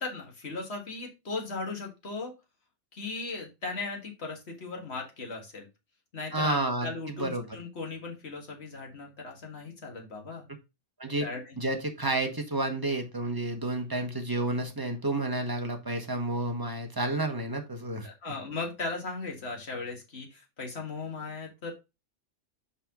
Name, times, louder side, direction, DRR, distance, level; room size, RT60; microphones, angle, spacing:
voice 1, 0.0-2.3 2.9-5.7 6.1-10.4 11.2-11.6 18.0-21.7, left 3 dB, 60° left, 1 dB, 2.1 m, -37 dB
voice 2, 6.3-6.9 7.2-7.4 11.0-11.3 11.6-18.3, right 2 dB, 20° right, 4 dB, 1.3 m, -30 dB
5.7 x 5.3 x 3.8 m, 0.26 s
omnidirectional pair, 1.3 m